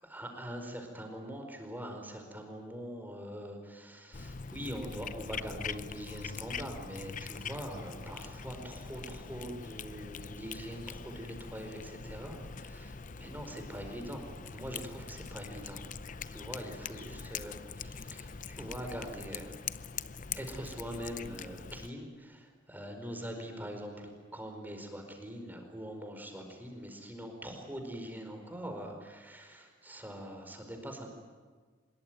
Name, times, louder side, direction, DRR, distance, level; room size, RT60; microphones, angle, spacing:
voice 1, 0.0-15.8 16.3-19.6 20.3-31.1, equal, 10° right, 4 dB, 4.6 m, -43 dB
Cat, 4.1-21.9, left 6 dB, 40° left, 0.7 m, -43 dB
25.0 x 22.0 x 9.3 m, 1.5 s
head